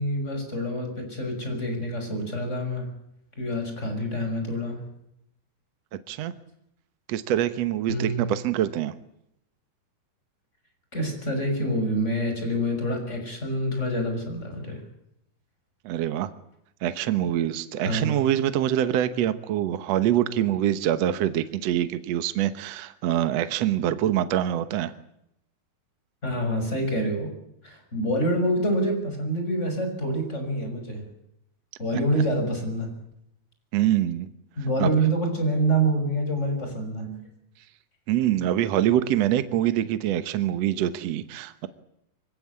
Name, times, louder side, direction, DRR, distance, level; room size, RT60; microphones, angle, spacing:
voice 1, 0.0-2.9 3.4-4.8 7.9-8.3 10.9-14.8 17.8-18.2 26.2-27.3 27.6-31.1 31.8-32.9 34.6-37.2, right 1 dB, 15° left, 5 dB, 6.3 m, -26 dB
voice 2, 7.1-8.9 15.8-16.3 16.8-24.9 33.7-34.3 34.8-34.9 38.1-41.7, right 12 dB, 75° right, 12 dB, 1.5 m, -25 dB
25.0 x 16.5 x 9.6 m, 0.79 s
omnidirectional pair, 4.5 m